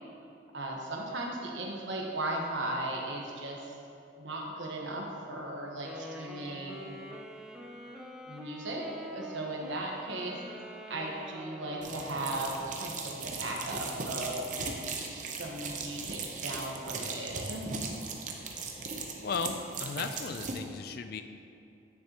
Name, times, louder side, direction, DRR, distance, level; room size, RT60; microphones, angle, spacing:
voice 1, 0.5-3.7 4.2-7.0 8.3-10.4 10.9-14.4 15.3-17.8, right 1 dB, 85° right, -1 dB, 1.2 m, -37 dB
Wind instrument woodwind instrument, 5.8-12.8, left 1 dB, 5° right, 0.5 m, -45 dB
sound 1, 11.8-20.6, right 4 dB, 40° right, 0.7 m, -38 dB
voice 2, 19.2-21.2, left 5 dB, 55° left, 8 dB, 0.4 m, -36 dB
9.6 x 6.9 x 2.9 m, 2.6 s
head